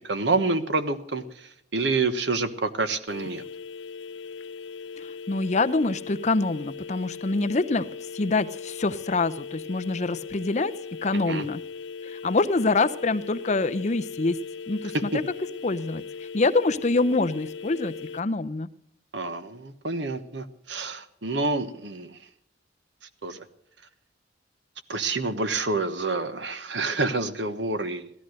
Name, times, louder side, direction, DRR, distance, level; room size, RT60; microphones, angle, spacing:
voice 1, 0.0-3.4 11.1-11.5 14.9-15.2 19.1-22.2 23.2-23.4 24.9-28.1, right 3 dB, 75° right, 11 dB, 1.2 m, -28 dB
sound 1, 3.1-18.2, left 5 dB, 85° left, 0.6 m, -39 dB
voice 2, 5.0-10.7 11.0-11.6 12.0-14.4 14.7-14.9 15.6-16.0 16.3-18.7, left 3 dB, 40° left, 12 dB, 0.6 m, -25 dB
16.5 x 13.5 x 6.4 m, 0.71 s
head